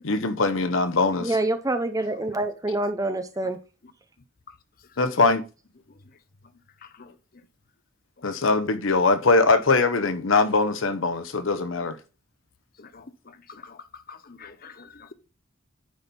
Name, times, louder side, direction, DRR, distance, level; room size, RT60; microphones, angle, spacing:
voice 1, 0.0-1.3 5.0-5.4 8.2-12.0, left 3 dB, 80° left, 0.9 m, -22 dB
voice 2, 1.2-3.6, right 2 dB, 15° right, 0.8 m, -26 dB
voice 3, 14.1-15.1, left 5 dB, 45° left, 0.8 m, -46 dB
9.7 x 4.3 x 5.4 m
head